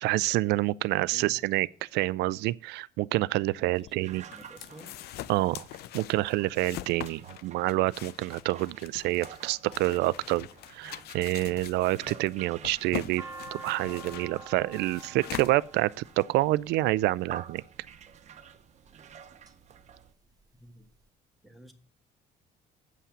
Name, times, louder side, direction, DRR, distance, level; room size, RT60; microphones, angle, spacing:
voice 1, 0.0-4.2 5.3-5.7 5.9-10.5 10.7-13.2 13.5-15.9 16.2-17.6, right 18 dB, 80° right, 0.4 m, -27 dB
voice 2, 1.1-1.4 3.7-5.0 20.6-20.9 21.4-21.7, right 1 dB, ahead, 1.6 m, -51 dB
sound 1, 3.8-16.2, left 14 dB, 70° left, 0.5 m, -43 dB
sound 2, 4.0-20.1, right 8 dB, 45° right, 0.8 m, -50 dB
sound 3, 12.7-17.0 17.8-18.3 18.9-19.5 19.9-20.0 20.1-21.0, right 3 dB, 20° right, 1.1 m, -46 dB
8.4 x 5.7 x 7.3 m
cardioid pair, 110°, 17 cm